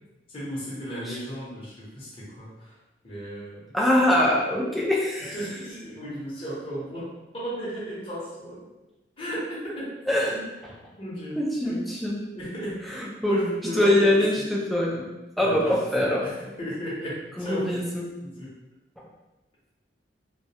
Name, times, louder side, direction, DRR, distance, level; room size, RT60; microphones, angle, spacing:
voice 1, 0.3-2.7 3.0-3.7 5.2-8.6 9.2-10.4 11.0-11.9 12.3-14.5 14.9-15.1 15.4-17.8 18.2-18.5, equal, 30° left, -8 dB, 0.8 m, -35 dB
voice 2, 3.7-5.4 10.1-10.4 11.4-12.2 12.9-13.4 13.7-15.1 15.4-16.3 17.4-18.1, left 1 dB, ahead, -3 dB, 0.3 m, -23 dB
2.2 x 2.1 x 2.7 m, 1.1 s
head